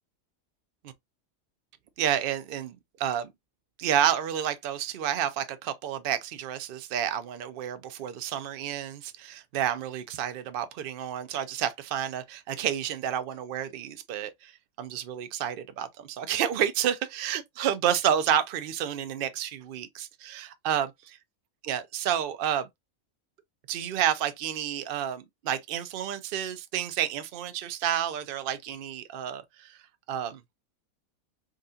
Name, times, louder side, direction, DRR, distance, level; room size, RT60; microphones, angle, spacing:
voice 1, 2.0-3.3 3.8-14.5 14.8-20.9 21.6-22.7 23.7-29.8 30.1-30.4, right 10 dB, 65° right, 0.5 m, -30 dB
3.8 x 2.4 x 2.5 m
omnidirectional pair, 1.5 m